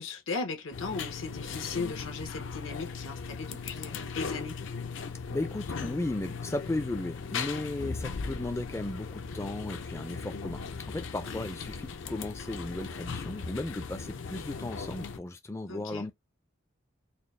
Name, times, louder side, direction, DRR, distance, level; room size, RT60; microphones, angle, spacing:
voice 1, 0.0-4.6 11.2-11.4 15.7-16.1, left 4 dB, 90° left, 1.0 m, -37 dB
sound 1, 0.7-15.2, left 5 dB, 70° left, 0.5 m, -38 dB
voice 2, 5.3-16.1, left 2 dB, 15° left, 0.3 m, -35 dB
4.1 x 2.0 x 3.2 m
head